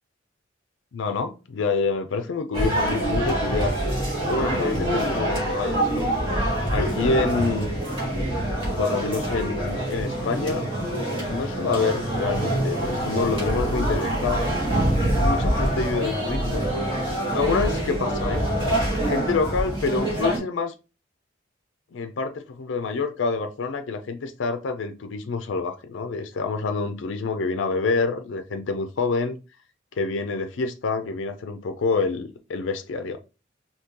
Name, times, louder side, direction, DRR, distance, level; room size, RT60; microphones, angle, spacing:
voice 1, 0.9-3.7 4.3-6.1 6.7-7.7 8.7-10.7 11.3-14.4 15.2-16.6 17.3-18.5 19.0-20.7 21.9-29.4 30.0-33.2, left 4 dB, 80° left, 0.4 m, -27 dB
sound 1, 2.5-20.4, right 1 dB, 30° right, 1.6 m, -25 dB
3.6 x 2.8 x 2.8 m
head